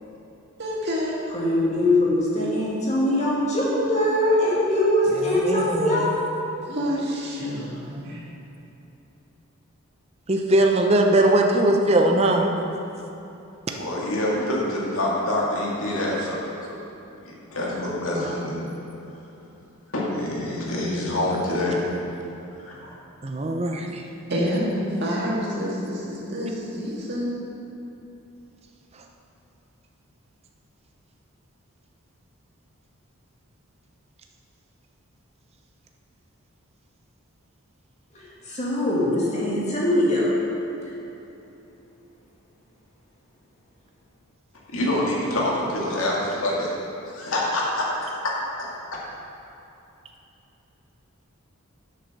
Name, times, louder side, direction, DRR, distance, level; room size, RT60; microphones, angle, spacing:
voice 1, 0.6-1.2 6.7-8.2 24.3-27.3, equal, 50° right, -4 dB, 2.0 m, -28 dB
voice 2, 1.3-6.2 38.1-40.4, left 1 dB, 30° left, -6 dB, 2.3 m, -22 dB
voice 3, 5.4-6.1 10.3-12.5 18.2-18.3 23.2-24.0, right 1 dB, 30° right, 2 dB, 0.6 m, -20 dB
voice 4, 13.7-16.4 16.7-16.8 17.2-18.7 19.9-21.9 22.5-22.9 44.7-46.7 47.1-48.3 48.6-49.0, left 1 dB, 75° left, -4 dB, 2.1 m, -26 dB
7.9 x 6.8 x 6.5 m, 2.9 s
head